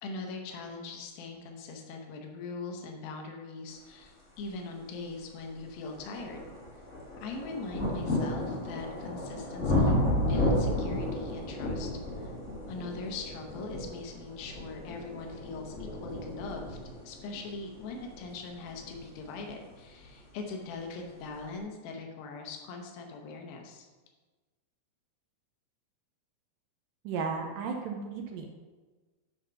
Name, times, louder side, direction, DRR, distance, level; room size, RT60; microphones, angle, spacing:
voice 1, 0.0-6.4 7.2-10.0 10.3-12.3 12.7-16.8 17.0-23.9, left 3 dB, 80° left, 2 dB, 2.8 m, -41 dB
sound 1, 4.8-4.9 5.5-20.2 21.1-21.2, left 1 dB, 45° left, 0.9 m, -33 dB
voice 2, 27.0-28.5, right 5 dB, 80° right, 3 dB, 2.2 m, -34 dB
10.0 x 4.0 x 5.6 m, 1.3 s
omnidirectional pair, 4.2 m